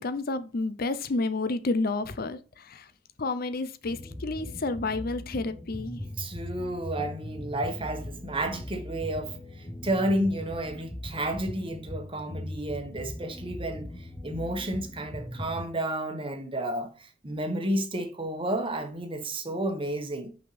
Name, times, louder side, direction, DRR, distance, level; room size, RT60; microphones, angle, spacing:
voice 1, 0.0-2.8 3.2-6.0, left 3 dB, 50° left, 0.6 m, -30 dB
sound 1, 3.8-15.7, left 1 dB, 15° left, 0.8 m, -40 dB
voice 2, 6.2-20.3, right 1 dB, 30° right, 1.2 m, -31 dB
5.6 x 5.4 x 3.3 m
head